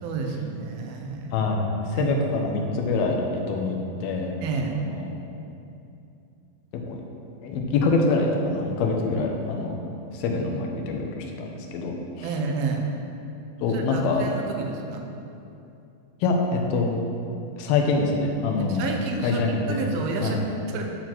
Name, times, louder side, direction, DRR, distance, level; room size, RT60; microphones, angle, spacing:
voice 1, 0.0-1.4 2.0-2.2 4.4-4.8 12.2-12.9 13.7-15.0 18.7-21.0, right 4 dB, 80° right, 2 dB, 2.7 m, -30 dB
voice 2, 1.3-1.7 1.9-4.3 4.7-5.0 6.9-7.0 7.4-9.8 10.1-12.3 13.6-14.2 16.2-16.4 16.7-16.9 17.6-18.9 19.2-19.9 20.2-20.4, left 3 dB, 80° left, 1 dB, 2.8 m, -25 dB
11.5 x 4.5 x 6.1 m, 2.7 s
omnidirectional pair, 4.4 m